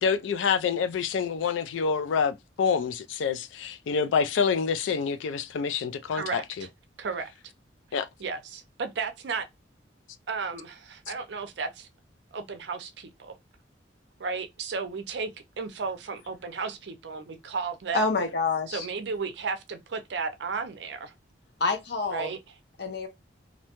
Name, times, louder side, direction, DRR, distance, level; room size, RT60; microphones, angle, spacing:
voice 1, 0.0-6.7 7.9-8.1, left 6 dB, 80° left, 0.3 m, -27 dB
voice 2, 6.1-6.7 7.0-7.3 8.2-9.4 10.3-11.9 12.3-13.3 14.2-15.3 15.6-18.1 18.7-21.1 22.1-22.4, right 5 dB, 65° right, 0.5 m, -34 dB
voice 3, 17.9-18.9 21.6-22.3 22.8-23.1, left 3 dB, 60° left, 0.7 m, -27 dB
2.6 x 2.1 x 2.8 m
head